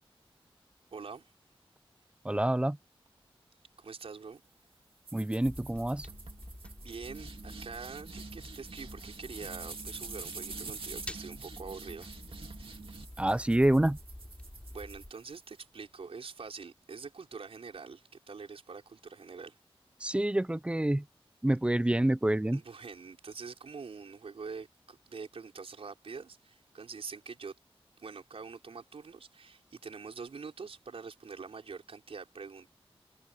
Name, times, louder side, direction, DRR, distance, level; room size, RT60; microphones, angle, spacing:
voice 1, 0.9-1.3 3.8-4.4 6.8-12.1 14.7-19.5 22.5-27.6 28.0-32.7, right 5 dB, 85° right, 5.2 m, -45 dB
voice 2, 2.2-2.8 5.1-6.1 13.2-14.0 20.0-21.1 21.4-22.6, right 1 dB, 10° right, 0.5 m, -27 dB
sound 1, 5.1-15.6, right 4 dB, 70° right, 2.5 m, -46 dB
sound 2, 5.4-15.1, left 1 dB, 10° left, 5.5 m, -48 dB
wide cardioid pair, 75°, 10 cm